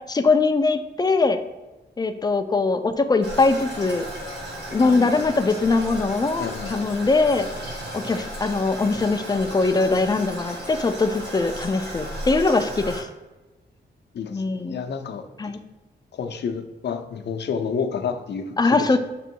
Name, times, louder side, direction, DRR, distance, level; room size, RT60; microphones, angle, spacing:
voice 1, 0.1-1.4 2.0-4.1 4.7-7.5 7.9-13.1 14.3-14.8 15.4-15.6 18.6-19.0, left 3 dB, 20° left, 7 dB, 0.4 m, -21 dB
Toilet flush, 3.2-13.0, equal, 70° right, 1.6 m, -35 dB
voice 2, 4.8-5.4 6.4-6.7 14.1-15.5 16.1-19.0, left 6 dB, 70° left, 7 dB, 0.6 m, -30 dB
6.8 x 3.0 x 4.6 m, 1.1 s
wide cardioid pair, 175°, 18 cm